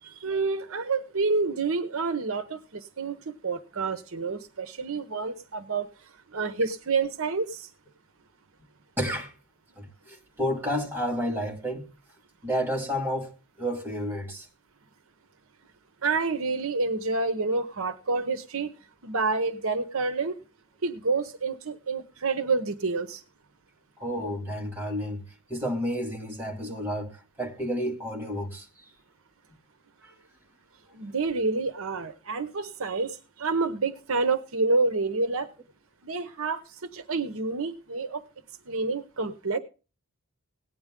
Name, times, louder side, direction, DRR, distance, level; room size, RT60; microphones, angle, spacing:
voice 1, 0.0-7.7 16.0-18.7 19.0-20.4 20.8-23.2 30.9-35.5 36.0-38.2 38.7-39.6, right 3 dB, 70° right, 0.9 m, -28 dB
voice 2, 9.0-9.3 9.8-11.8 12.4-14.5 24.0-25.2 25.5-28.7 30.0-30.1, equal, 10° right, 2.3 m, -31 dB
17.5 x 9.5 x 3.7 m
head